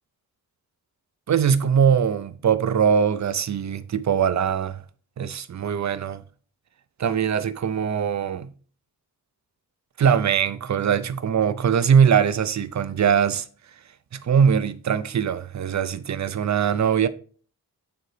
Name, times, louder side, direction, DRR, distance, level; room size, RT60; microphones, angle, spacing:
voice 1, 1.3-4.8 5.2-6.2 7.0-8.5 10.0-13.5 14.1-17.1, right 7 dB, 50° right, 0.5 m, -21 dB
8.9 x 3.9 x 3.2 m
wide cardioid pair, 150°, 37 cm